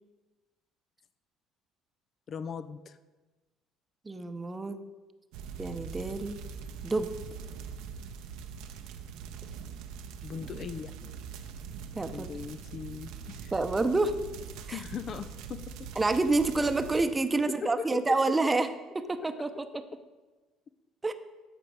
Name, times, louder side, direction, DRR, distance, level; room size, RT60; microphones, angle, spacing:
voice 1, 2.3-3.0 10.2-10.9 12.1-13.5 14.7-15.9 17.5-18.3 19.2-19.5, left 6 dB, 50° left, 12 dB, 0.4 m, -39 dB
voice 2, 4.1-4.8 5.6-6.4 6.8-7.1 12.0-12.3 13.5-14.2 14.7-14.8 16.0-18.7 19.1-19.5 21.0-21.1, right 3 dB, 20° right, 9 dB, 0.7 m, -28 dB
sound 1, 5.3-17.1, right 7 dB, 75° right, 0.7 m, -43 dB
13.5 x 5.1 x 4.8 m, 1.2 s
hypercardioid pair, 65°, 0 cm